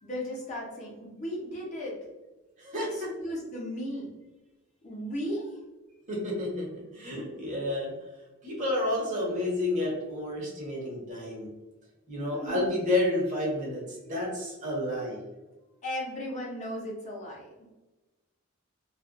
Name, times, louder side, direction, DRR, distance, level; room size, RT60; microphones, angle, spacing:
voice 1, 0.0-2.0 2.9-4.1 4.8-5.5 12.2-12.7 15.8-17.5, equal, 35° left, -4 dB, 0.7 m, -36 dB
voice 2, 2.6-3.1 6.1-7.9 8.4-11.5 12.1-13.8 14.1-15.2, left 1 dB, 35° right, -4 dB, 0.8 m, -30 dB
2.4 x 2.3 x 2.4 m, 1.1 s
head